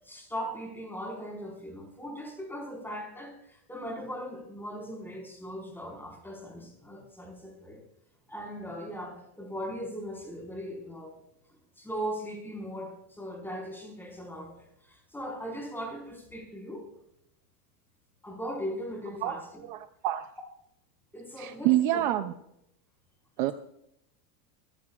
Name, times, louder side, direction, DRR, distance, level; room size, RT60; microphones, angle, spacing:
voice 1, 0.0-7.8 8.3-11.2 11.8-16.9 18.2-19.5 21.1-22.2, equal, 5° left, 0 dB, 4.4 m, -39 dB
voice 2, 19.7-20.3 21.4-22.3 23.4-23.5, right 14 dB, 35° right, 10 dB, 0.4 m, -27 dB
26.5 x 16.0 x 2.4 m, 0.76 s
supercardioid pair, 170°, 49 cm